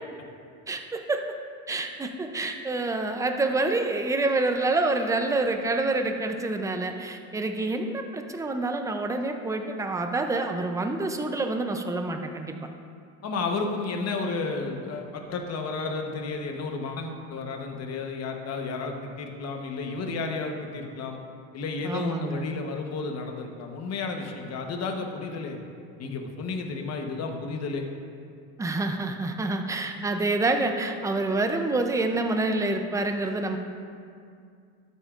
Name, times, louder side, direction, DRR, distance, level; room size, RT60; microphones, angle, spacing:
voice 1, 0.7-1.2 1.7-12.5 21.8-22.5 28.6-33.6, right 2 dB, 10° right, 5 dB, 0.5 m, -27 dB
voice 2, 13.2-21.2 21.5-25.6 26.0-27.9, left 4 dB, 40° left, 3 dB, 1.1 m, -32 dB
13.0 x 8.2 x 2.5 m, 2.3 s
cardioid pair, 125°, 39 cm